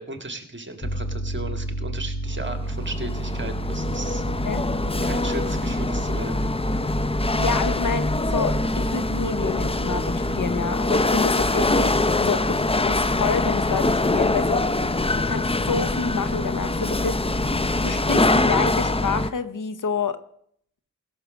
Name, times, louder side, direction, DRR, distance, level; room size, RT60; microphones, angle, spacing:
voice 1, 0.0-4.2 5.0-6.4, right 2 dB, 35° right, 7 dB, 1.7 m, -35 dB
Piano, 0.8-13.0, right 2 dB, 35° left, 1.6 m, -32 dB
Chatter / Hiss / Rattle, 2.4-19.3, left 2 dB, 15° left, 0.5 m, -24 dB
voice 2, 7.3-14.7 15.2-17.2 17.8-20.2, left 5 dB, 65° left, 13 dB, 0.8 m, -28 dB
16.5 x 6.4 x 6.3 m, 0.67 s
cardioid pair, 55°, 34 cm